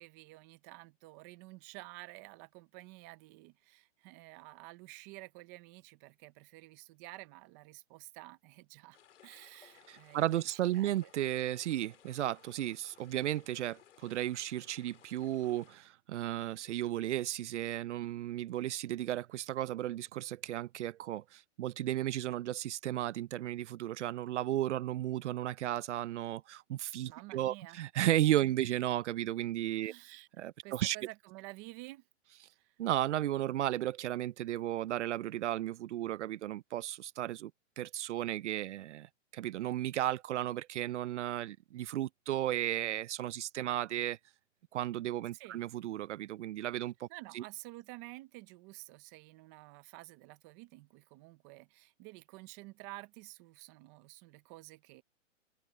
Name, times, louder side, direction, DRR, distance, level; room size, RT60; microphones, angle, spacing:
voice 1, 0.0-11.1 27.0-27.8 28.4-28.5 29.8-30.3 30.6-32.0 32.6-32.7 45.3-45.6 47.1-55.0, right 21 dB, 15° right, 0.4 m, -51 dB
sound 1, 8.9-15.8, left 10 dB, 65° left, 3.8 m, -61 dB
voice 2, 9.9-29.9 30.4-31.0 32.8-37.5 37.8-44.2 44.7-47.1 47.3-47.4, right 13 dB, 65° right, 0.5 m, -34 dB
hypercardioid pair, 145°, 38 cm